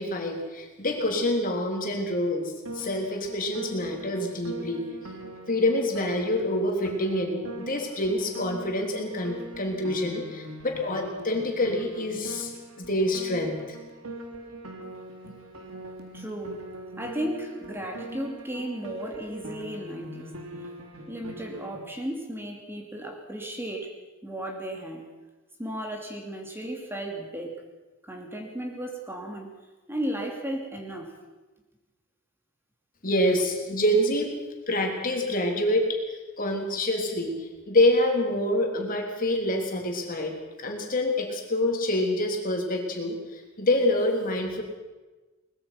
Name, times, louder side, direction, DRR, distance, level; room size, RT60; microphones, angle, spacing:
voice 1, 0.0-4.8 5.5-12.5 12.8-13.8 33.0-34.3 34.7-36.0 36.4-40.3 40.6-44.6, left 1 dB, 40° left, 2 dB, 3.5 m, -26 dB
Piano, 2.7-21.8, right 1 dB, 80° right, 3.2 m, -42 dB
voice 2, 16.1-16.5 17.0-20.3 21.1-23.9 24.2-25.1 25.6-27.6 28.1-29.5 29.9-31.1, right 1 dB, 10° right, 1 dB, 2.8 m, -34 dB
22.5 x 20.0 x 5.9 m, 1.2 s
head